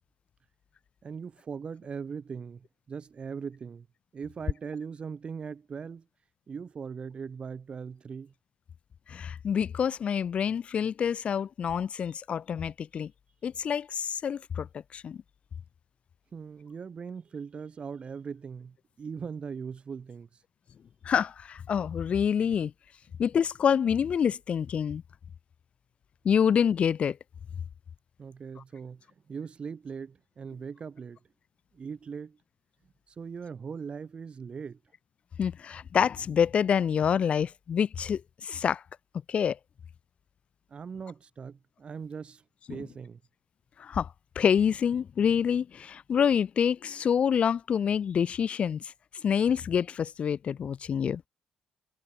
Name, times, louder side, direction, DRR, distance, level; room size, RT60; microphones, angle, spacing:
voice 1, 1.0-3.9 4.1-6.1 6.5-8.3 16.3-20.3 28.2-29.0 29.3-31.2 31.7-32.4 33.1-34.8 40.7-42.4 42.7-43.2, right 6 dB, 45° right, 5.7 m, -40 dB
voice 2, 9.1-13.1 13.4-15.2 21.0-22.7 23.2-25.0 26.2-27.2 35.4-38.8 39.3-39.6 42.7-42.8 43.8-44.1 44.4-48.9 49.2-51.2, left 7 dB, 55° left, 0.5 m, -27 dB
supercardioid pair, 60°, 3 cm